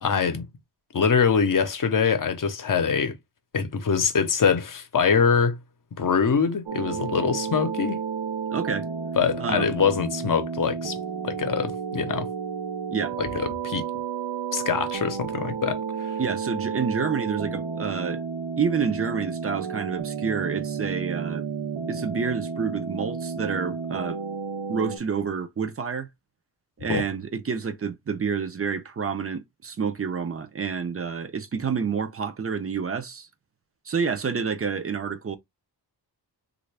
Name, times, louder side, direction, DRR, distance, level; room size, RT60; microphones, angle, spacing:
voice 1, 0.0-0.5 0.9-3.1 3.5-5.6 6.0-8.0 9.2-11.0 11.2-12.3 13.2-13.9 14.5-15.8 26.9-27.0, left 6 dB, 50° left, 0.7 m, -23 dB
sound 1, 6.7-25.0, right 6 dB, 85° right, 0.7 m, -32 dB
voice 2, 8.5-8.9 9.4-9.8 12.9-13.1 16.2-18.2 18.6-21.5 21.9-24.2 24.7-26.1 26.8-33.3 33.9-35.4, right 6 dB, 35° right, 0.5 m, -28 dB
3.3 x 2.5 x 3.2 m
wide cardioid pair, 115°, 41 cm